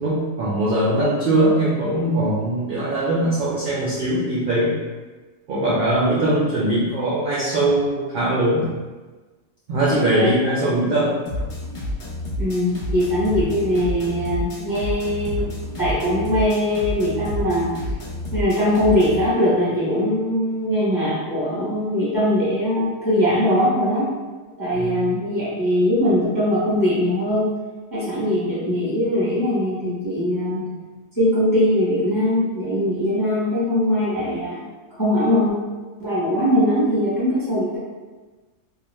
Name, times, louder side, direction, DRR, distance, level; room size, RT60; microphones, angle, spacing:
voice 1, 0.0-4.7 5.5-8.7 9.7-11.2 24.7-25.1, right 1 dB, 70° right, -6 dB, 0.5 m, -21 dB
voice 2, 9.9-10.3 12.4-15.5 15.8-17.7 18.3-24.1 24.6-27.5 27.9-30.6 31.2-34.6 35.0-35.5 36.0-37.8, left 1 dB, 20° left, -10 dB, 0.7 m, -21 dB
sound 1, 11.3-19.3, left 1 dB, 60° left, 0.9 m, -29 dB
2.4 x 2.2 x 3.0 m, 1.3 s
omnidirectional pair, 1.4 m